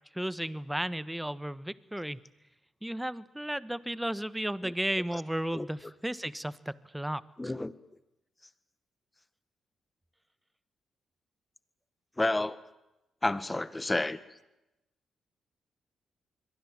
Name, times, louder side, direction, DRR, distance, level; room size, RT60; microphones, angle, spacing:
voice 1, 0.1-2.2 2.8-7.5, right 1 dB, 5° right, 16 dB, 1.2 m, -34 dB
voice 2, 7.4-7.7 12.2-12.6 13.2-14.2, left 2 dB, 20° left, 14 dB, 1.7 m, -30 dB
27.5 x 22.0 x 7.5 m, 0.96 s
hypercardioid pair, 45°, 0 cm